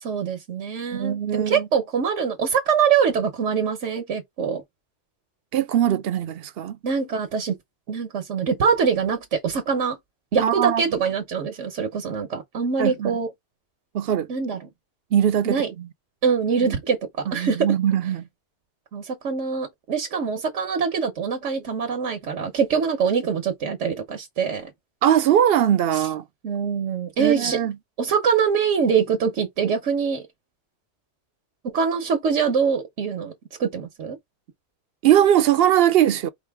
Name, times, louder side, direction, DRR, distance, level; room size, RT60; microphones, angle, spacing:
voice 1, 0.0-4.6 6.8-7.5 7.9-10.0 10.3-13.3 14.3-14.6 15.4-15.7 16.2-17.7 18.9-24.7 25.9-26.1 26.4-27.6 28.0-30.2 31.6-33.3 33.6-34.2, right 6 dB, 90° right, 1.3 m, -24 dB
voice 2, 0.9-1.7 5.5-6.8 10.4-10.8 12.8-13.1 13.9-14.3 15.1-15.9 16.6-16.8 17.3-18.2 25.0-26.2 27.2-27.7 35.0-36.3, right 10 dB, 65° right, 0.7 m, -21 dB
4.9 x 2.5 x 3.4 m
omnidirectional pair, 1.2 m